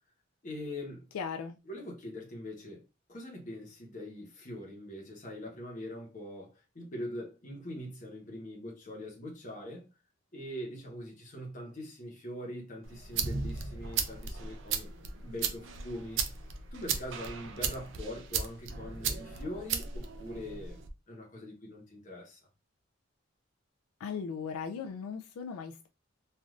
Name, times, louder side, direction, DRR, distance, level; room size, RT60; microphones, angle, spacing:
voice 1, 0.4-1.1 1.7-2.8 3.1-9.9 10.3-14.9 15.2-16.2 16.7-20.8 21.1-22.4, left 1 dB, 35° left, 0.9 m, -42 dB
voice 2, 1.1-1.6 24.0-25.9, left 6 dB, 90° left, 0.3 m, -38 dB
sound 1, 12.8-20.9, right 6 dB, 60° right, 0.4 m, -36 dB
3.2 x 2.5 x 2.4 m
head